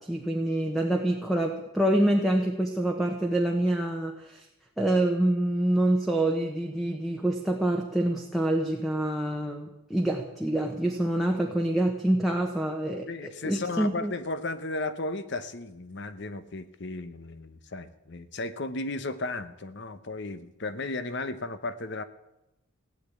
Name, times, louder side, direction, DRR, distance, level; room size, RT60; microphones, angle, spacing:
voice 1, 0.0-4.5 4.8-14.1, right 1 dB, ahead, 0 dB, 1.1 m, -26 dB
voice 2, 13.1-22.0, left 2 dB, 55° left, 13 dB, 1.0 m, -34 dB
16.5 x 8.5 x 8.7 m, 0.92 s
head